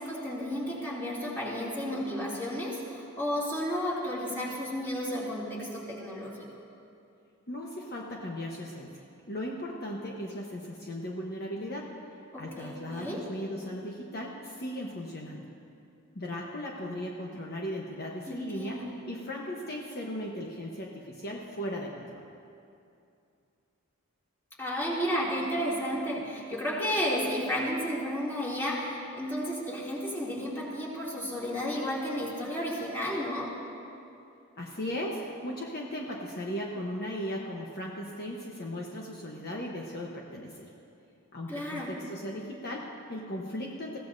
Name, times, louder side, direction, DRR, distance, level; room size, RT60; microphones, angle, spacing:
voice 1, 0.0-6.4 12.3-13.3 18.3-18.9 24.6-33.6 41.5-42.0, equal, 10° left, -6 dB, 2.6 m, -32 dB
voice 2, 7.5-12.0 12.4-15.5 16.1-22.3 34.6-40.7 41.3-44.0, equal, 50° left, -1 dB, 1.1 m, -37 dB
21.5 x 16.0 x 2.7 m, 2.6 s
head